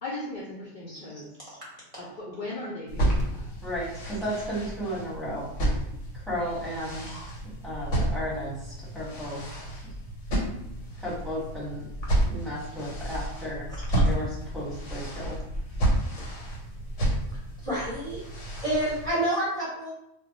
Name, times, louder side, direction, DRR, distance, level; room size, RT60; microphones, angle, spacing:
voice 1, 0.0-1.3 2.0-3.5, left 2 dB, 55° left, -5 dB, 0.5 m, -37 dB
sound 1, 2.9-19.1, right 1 dB, 90° left, 1.1 m, -31 dB
voice 2, 3.6-5.4 6.1-7.2 7.6-9.4 11.0-11.8 12.3-13.7 14.0-15.4, equal, ahead, -8 dB, 0.9 m, -34 dB
voice 3, 17.6-18.2 18.6-19.9, right 1 dB, 35° right, -8 dB, 0.6 m, -29 dB
2.2 x 2.0 x 3.8 m, 0.83 s
omnidirectional pair, 1.2 m